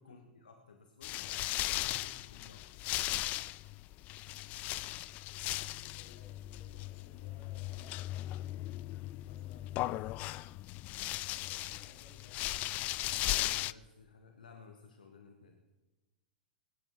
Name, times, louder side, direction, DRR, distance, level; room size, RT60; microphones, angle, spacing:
voice 1, 0.0-2.6 13.1-15.6, left 5 dB, 70° left, 4 dB, 1.4 m, -56 dB
sound 1, 1.0-13.7, left 17 dB, 35° left, 0.3 m, -37 dB
voice 2, 6.0-8.2 9.2-10.6 11.3-12.4, left 3 dB, 50° left, -2 dB, 6.2 m, -62 dB
23.5 x 12.0 x 3.2 m, 1.2 s
figure-of-eight pair, 95°, 5 cm